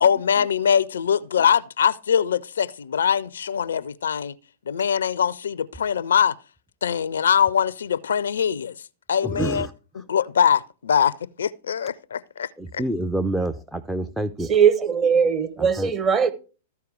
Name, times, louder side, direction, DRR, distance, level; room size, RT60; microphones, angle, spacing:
voice 1, 0.0-4.3 4.7-6.3 6.8-8.7 9.1-9.7 10.1-11.1 11.4-12.5 12.7-12.8, left 8 dB, 70° left, 0.4 m, -22 dB
voice 2, 9.2-9.7 12.6-14.5 15.6-15.9, right 1 dB, 5° right, 0.4 m, -27 dB
voice 3, 14.5-16.3, right 7 dB, 25° right, 1.0 m, -19 dB
14.0 x 4.6 x 4.7 m
figure-of-eight pair, 100°, 0 cm